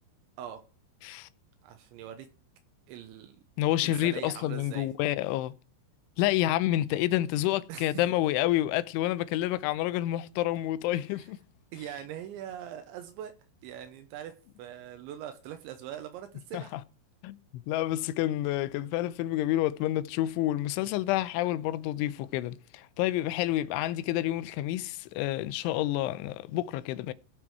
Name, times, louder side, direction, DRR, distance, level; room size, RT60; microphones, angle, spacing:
voice 1, 1.6-2.3 2.9-3.4 3.8-4.9 7.7-8.1 10.9-11.3 11.7-13.3 13.6-16.7, right 10 dB, 80° right, 3.1 m, -42 dB
voice 2, 3.6-5.5 6.2-11.4 16.5-16.8 17.2-17.4 17.7-27.1, left 14 dB, 85° left, 3.1 m, -29 dB
18.0 x 6.1 x 4.6 m
omnidirectional pair, 5.4 m